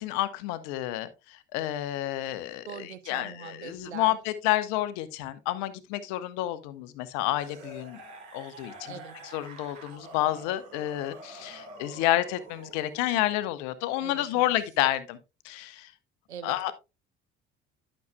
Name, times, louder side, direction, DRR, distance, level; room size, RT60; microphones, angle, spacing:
voice 1, 0.0-8.0 8.3-15.2 15.4-15.9 16.4-16.7, left 15 dB, 60° left, 1.0 m, -30 dB
voice 2, 2.7-4.1 8.9-9.2 14.0-14.4 16.3-16.7, right 9 dB, 80° right, 0.7 m, -42 dB
sound 1, 7.4-13.3 14.5-14.6, right 2 dB, 60° right, 2.8 m, -47 dB
12.0 x 6.5 x 2.2 m
figure-of-eight pair, 55°, 33 cm